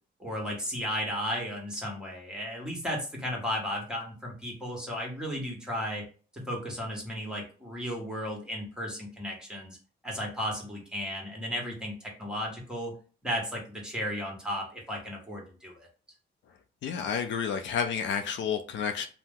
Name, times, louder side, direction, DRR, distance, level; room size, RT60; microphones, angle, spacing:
voice 1, 0.2-6.0 6.3-9.8 10.0-12.9 13.2-15.9, equal, 5° right, 1.3 m, -34 dB
voice 2, 16.8-19.1, left 7 dB, 70° left, 0.5 m, -30 dB
2.7 x 2.1 x 3.6 m
cardioid pair, 90°, 20 cm